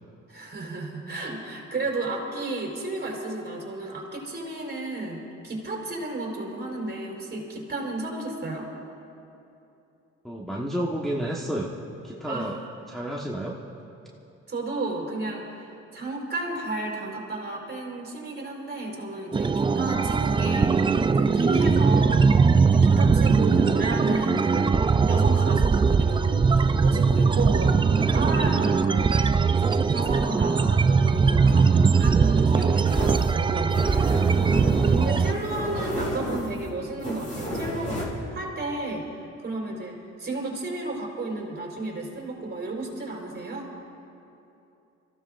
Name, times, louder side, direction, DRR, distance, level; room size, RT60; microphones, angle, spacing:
voice 1, 0.3-8.7 12.2-12.5 14.5-22.2 22.7-29.2 29.6-39.0 39.4-43.7, right 2 dB, 35° right, -2 dB, 4.0 m, -33 dB
voice 2, 10.2-11.7 12.0-12.6 12.9-13.6 30.4-30.9, right 1 dB, ahead, -4 dB, 1.2 m, -31 dB
sound 1, 19.3-35.3, right 5 dB, 15° right, 0.3 m, -20 dB
sound 2, 32.8-38.0, equal, 25° left, 4.3 m, -33 dB
28.0 x 15.5 x 2.5 m, 2.9 s
cardioid pair, 90°, 30 cm